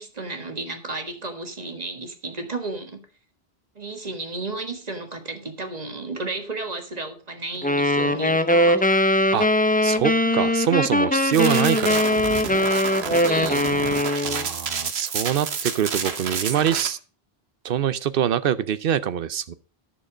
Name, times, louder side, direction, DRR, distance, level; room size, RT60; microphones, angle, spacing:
voice 1, 0.0-3.0 3.7-8.9 10.2-10.5 13.2-13.7, right 3 dB, 40° right, 1.6 m, -33 dB
sound 1, 7.6-14.5, left 1 dB, 15° left, 0.4 m, -21 dB
voice 2, 9.8-12.0 14.2-17.0 17.6-19.5, right 9 dB, 65° right, 0.8 m, -24 dB
sound 2, 11.3-16.9, right 6 dB, 85° right, 1.3 m, -29 dB
10.5 x 6.8 x 5.0 m
omnidirectional pair, 1.0 m